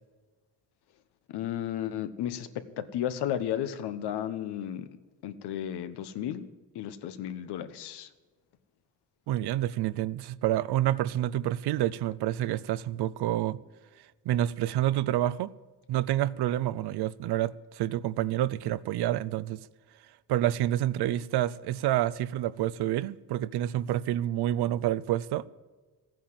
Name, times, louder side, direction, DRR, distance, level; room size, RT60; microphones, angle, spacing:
voice 1, 1.3-4.9 5.2-6.5 6.7-8.1, left 10 dB, 90° left, 1.1 m, -33 dB
voice 2, 9.3-13.6 14.3-15.5 15.9-19.6 20.3-25.4, right 13 dB, 80° right, 0.6 m, -28 dB
15.0 x 9.2 x 7.5 m
cardioid pair, 135°, 39 cm